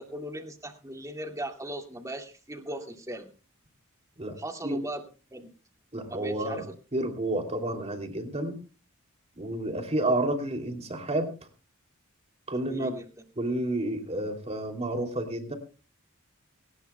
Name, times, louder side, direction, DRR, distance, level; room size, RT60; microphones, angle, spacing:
voice 1, 0.0-3.3 4.4-5.0 5.3-5.5 6.1-6.7 12.6-13.0, right 1 dB, 15° right, 4 dB, 2.0 m, -38 dB
voice 2, 5.9-6.7 6.9-8.6 9.4-11.3 12.5-12.9 13.4-15.6, right 1 dB, 30° right, 5 dB, 2.8 m, -30 dB
20.5 x 18.5 x 2.2 m, 0.33 s
head